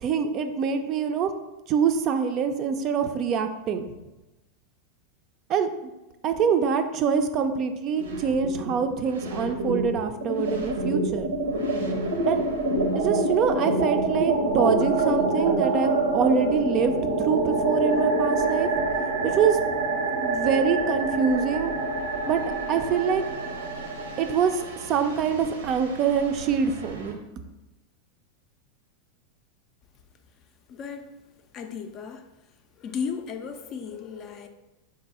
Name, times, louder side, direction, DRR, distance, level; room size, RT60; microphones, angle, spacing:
voice 1, 0.0-1.3 1.7-3.9 5.5-5.9 6.2-11.3 12.3-12.4 12.9-18.7 19.2-19.6 20.2-21.7 22.3-22.4 22.7-23.2 24.2-24.6 24.9-27.2, right 6 dB, 40° right, 8 dB, 0.4 m, -25 dB
Alien Message and Arrival, 8.0-8.8 9.1-27.1, right 2 dB, 80° right, 0.6 m, -27 dB
voice 2, 30.7-31.2 31.5-32.3 32.8-34.5, left 6 dB, 40° left, 7 dB, 0.4 m, -35 dB
3.9 x 2.6 x 4.1 m, 1.0 s
hypercardioid pair, 90°, 0 cm